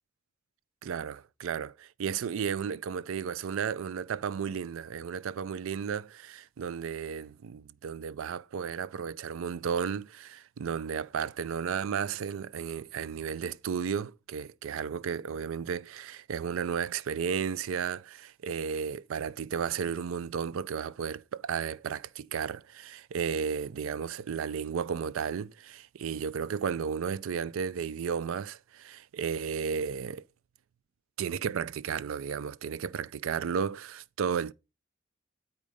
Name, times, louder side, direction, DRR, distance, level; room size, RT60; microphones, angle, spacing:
voice 1, 0.8-30.2 31.2-34.5, right 7 dB, 75° right, 0.4 m, -33 dB
8.3 x 5.0 x 5.2 m
head